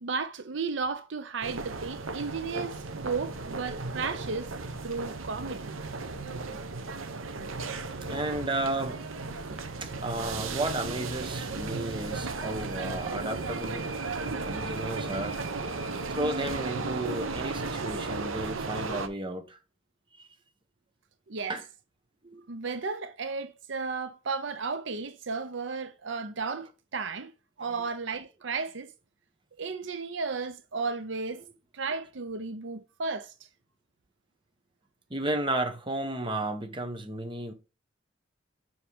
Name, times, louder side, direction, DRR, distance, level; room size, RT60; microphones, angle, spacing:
voice 1, 0.0-4.5 4.8-5.7 21.3-21.6 22.5-27.3 27.6-28.9 29.6-31.4 31.7-33.3, right 4 dB, 65° right, 0.7 m, -34 dB
sound 1, 1.4-19.1, right 3 dB, 90° right, 1.0 m, -35 dB
voice 2, 8.1-9.0 9.8-13.9 14.4-15.4 16.1-19.6 20.2-20.3 21.5-21.6 22.2-22.4 27.6-27.8 35.1-37.5, right 2 dB, 25° right, 1.2 m, -33 dB
6.9 x 6.4 x 3.5 m
head